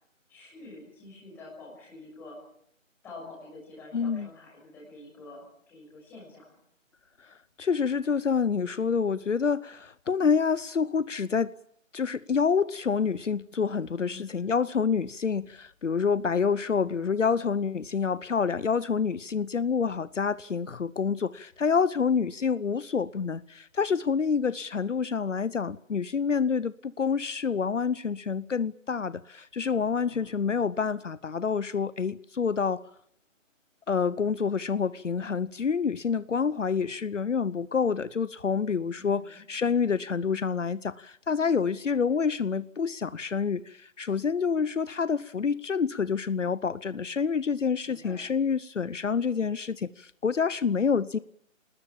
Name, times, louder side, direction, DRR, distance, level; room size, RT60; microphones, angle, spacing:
voice 1, 0.3-2.4 3.0-6.6 14.1-14.5 39.0-39.4 47.8-48.3, left 2 dB, 5° left, -4 dB, 5.9 m, -47 dB
voice 2, 3.9-4.3 7.2-11.5 11.9-32.8 33.9-51.2, left 6 dB, 65° left, 17 dB, 1.0 m, -27 dB
sound 1, 29.7-32.8, left 4 dB, 25° left, 2.3 m, -56 dB
27.5 x 20.0 x 7.3 m, 0.69 s
hypercardioid pair, 175°, 39 cm